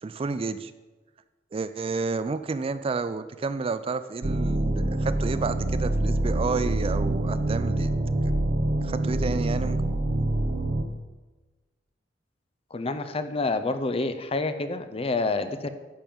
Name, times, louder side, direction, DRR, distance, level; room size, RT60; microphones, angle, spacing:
voice 1, 0.0-0.7 1.5-8.0 8.8-9.8, right 4 dB, 30° right, 12 dB, 0.3 m, -30 dB
sound 1, 4.2-10.8, right 1 dB, 50° right, 0.8 m, -26 dB
voice 2, 12.7-15.7, left 3 dB, 35° left, 10 dB, 0.6 m, -28 dB
10.5 x 5.3 x 7.1 m, 1.2 s
head